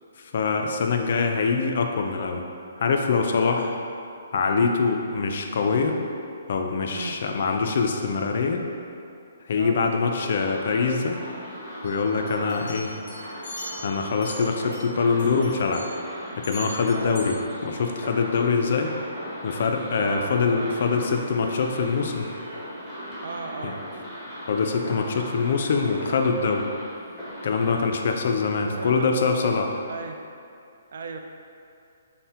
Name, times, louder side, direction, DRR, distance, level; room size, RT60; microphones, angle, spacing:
voice 1, 0.2-2.4 2.8-3.8 4.3-6.0 6.5-8.6 9.5-11.2 11.8-12.9 13.8-15.9 16.4-18.9 19.4-22.3 23.6-23.7 24.5-26.7 27.4-29.8, left 4 dB, 55° left, 3 dB, 0.3 m, -24 dB
sound 1, 10.2-27.8, equal, ahead, 1.1 m, -38 dB
sound 2, 11.8-14.9 15.2-16.0 16.4-17.3, equal, 25° left, 1.5 m, -41 dB
voice 2, 20.0-20.9 23.2-23.8 28.6-29.1 29.9-30.2 30.9-31.2, right 4 dB, 60° right, 4 dB, 0.3 m, -36 dB
5.5 x 2.1 x 2.8 m, 2.5 s
hypercardioid pair, 165°, 0 cm